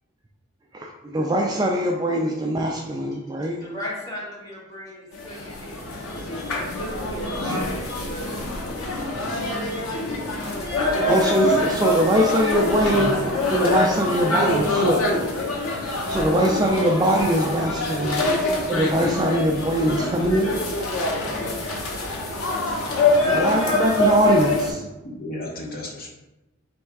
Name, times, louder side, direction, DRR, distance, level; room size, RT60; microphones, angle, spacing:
voice 1, 0.7-3.6 9.9-10.0 11.1-13.2 13.5-15.1 16.1-18.2 18.7-20.6 23.3-24.8, right 1 dB, 20° right, 0 dB, 0.3 m, -22 dB
voice 2, 3.1-9.2, equal, 15° left, -6 dB, 1.3 m, -38 dB
sound 1, 5.1-24.7, left 2 dB, 85° left, 0.9 m, -25 dB
voice 3, 7.4-7.8 25.0-26.1, left 1 dB, 45° left, -1 dB, 0.8 m, -32 dB
3.5 x 3.2 x 4.6 m, 1.0 s
head